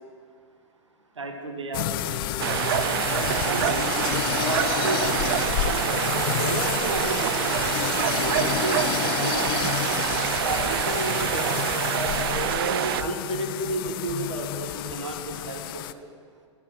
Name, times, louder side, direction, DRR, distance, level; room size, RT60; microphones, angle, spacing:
voice 1, 1.2-3.9 4.4-7.9 8.2-9.6 10.4-15.8, right 2 dB, 90° right, 4 dB, 1.4 m, -33 dB
sound 1, 1.7-15.9, left 15 dB, 50° left, 0.4 m, -29 dB
sound 2, 2.4-13.0, right 13 dB, 55° right, 0.4 m, -26 dB
11.0 x 9.2 x 6.0 m, 2.1 s
hypercardioid pair, 110°, 15 cm